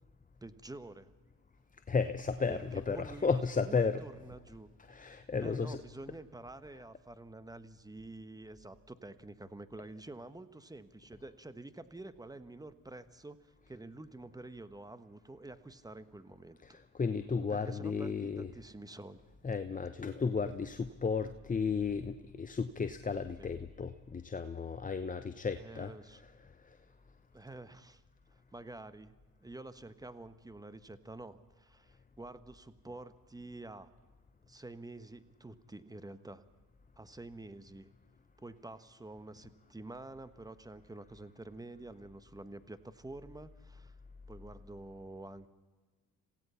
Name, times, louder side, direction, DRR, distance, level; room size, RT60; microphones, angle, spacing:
voice 1, 0.4-1.1 2.5-2.6 2.9-3.3 3.6-16.8 17.5-19.2 23.4-23.5 25.5-26.2 27.3-28.0 28.3-29.1 29.4-33.9 34.5-36.5 37.0-37.9 38.4-43.9 44.3-45.5, right 2 dB, 10° right, 12 dB, 1.2 m, -48 dB
voice 2, 1.7-4.0 4.8-5.8 16.6-18.5 19.4-26.9, left 5 dB, 20° left, 10 dB, 0.9 m, -34 dB
27.5 x 16.5 x 5.7 m, 1.3 s
supercardioid pair, 75°, 43 cm